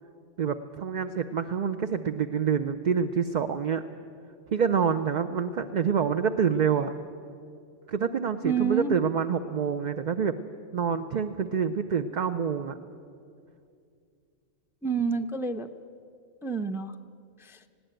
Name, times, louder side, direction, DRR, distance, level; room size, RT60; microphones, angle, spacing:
voice 1, 0.4-3.8 4.5-6.9 7.9-10.4 10.7-12.8, right 7 dB, 45° right, 8 dB, 0.6 m, -27 dB
voice 2, 8.4-9.0 14.8-15.7 16.4-16.9 17.4-17.6, right 5 dB, 5° right, 7 dB, 0.4 m, -28 dB
19.5 x 17.0 x 9.1 m, 2.4 s
omnidirectional pair, 1.3 m